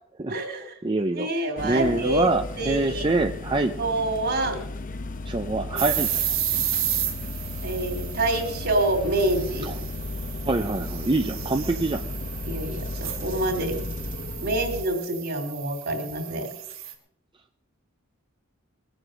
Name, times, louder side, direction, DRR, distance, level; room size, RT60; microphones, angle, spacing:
voice 1, 0.3-0.7 1.1-2.3 2.6-3.1 3.8-4.6 7.6-9.7 12.4-13.8 14.4-16.5, right 1 dB, 50° right, 4 dB, 3.0 m, -27 dB
voice 2, 0.8-1.3 1.6-3.7 5.3-6.1 9.7-9.8 10.5-12.0, right 2 dB, 25° right, 6 dB, 0.6 m, -25 dB
sound 1, 1.6-14.8, left 2 dB, 40° left, 0.9 m, -35 dB
sound 2, 5.8-16.9, right 11 dB, 85° right, 2.5 m, -33 dB
21.0 x 7.9 x 6.3 m, 0.75 s
head